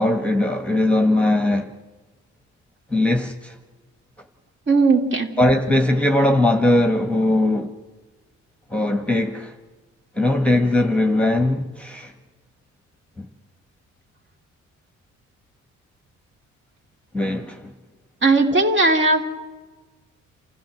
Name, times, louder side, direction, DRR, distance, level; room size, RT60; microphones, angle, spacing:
voice 1, 0.0-1.7 2.9-3.5 5.4-7.7 8.7-9.5 10.2-12.1 13.2-13.3 17.1-17.7, left 1 dB, 5° left, 1.5 m, -20 dB
voice 2, 4.7-5.3 18.2-19.2, right 3 dB, 40° right, 2.9 m, -17 dB
28.0 x 14.5 x 7.7 m
cardioid pair, 90°, 30 cm